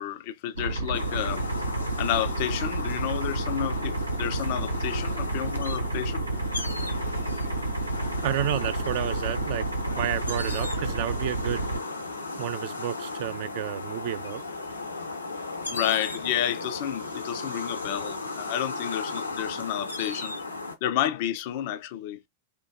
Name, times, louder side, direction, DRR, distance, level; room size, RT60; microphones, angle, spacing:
voice 1, 0.0-1.5 2.0-6.3 15.7-20.4 20.8-22.2, left 11 dB, 50° left, 0.4 m, -30 dB
sound 1, 0.6-11.8, right 2 dB, 85° right, 0.7 m, -30 dB
sound 2, 0.9-20.8, left 3 dB, 80° left, 0.7 m, -35 dB
voice 2, 8.2-9.7 9.9-11.6 12.4-14.4, right 12 dB, 50° right, 0.3 m, -31 dB
2.9 x 2.2 x 2.4 m
figure-of-eight pair, 90°, 0 cm